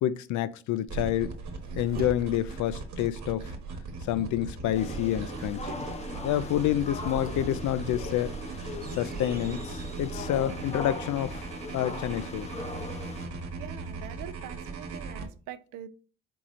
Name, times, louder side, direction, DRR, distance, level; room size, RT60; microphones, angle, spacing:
voice 1, 0.0-1.3 1.8-3.5 4.0-5.7 6.2-8.3 8.9-11.5 11.7-12.5, left 12 dB, 75° left, 0.5 m, -28 dB
sound 1, 0.9-15.2, right 4 dB, 65° right, 1.1 m, -38 dB
sound 2, 1.3-2.8 6.9-10.1, right 7 dB, 30° right, 0.4 m, -47 dB
sound 3, 4.7-13.3, left 3 dB, 20° left, 0.6 m, -40 dB
voice 2, 13.5-15.9, right 11 dB, 90° right, 0.5 m, -43 dB
4.6 x 4.1 x 2.5 m
cardioid pair, 90°, 30 cm